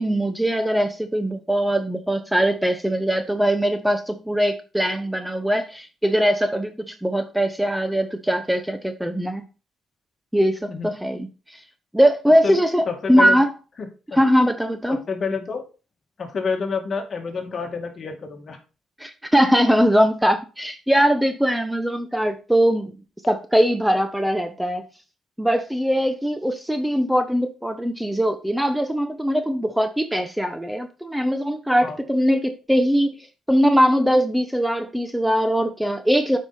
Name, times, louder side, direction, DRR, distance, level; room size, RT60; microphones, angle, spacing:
voice 1, 0.0-9.5 10.3-11.6 11.9-13.5 14.1-15.0 19.0-22.9 23.3-24.8 25.4-33.2 33.5-36.4, equal, 5° right, 8 dB, 0.8 m, -21 dB
voice 2, 12.9-13.4 13.8-14.2 14.9-15.6 16.2-18.6 31.8-32.0, left 5 dB, 45° left, 4 dB, 2.1 m, -28 dB
7.8 x 5.6 x 4.3 m, 0.33 s
cardioid pair, 90°, 0 cm